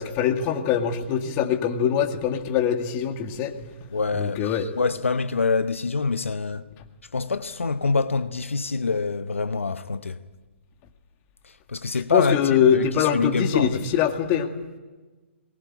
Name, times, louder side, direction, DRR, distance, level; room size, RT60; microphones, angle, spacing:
voice 1, 0.0-3.7 4.1-4.7 12.1-14.5, left 8 dB, 35° left, 2.1 m, -23 dB
voice 2, 3.9-6.6 7.1-10.2 11.4-13.8, left 4 dB, 85° left, 0.9 m, -26 dB
22.0 x 19.0 x 8.9 m
figure-of-eight pair, 125°, 7 cm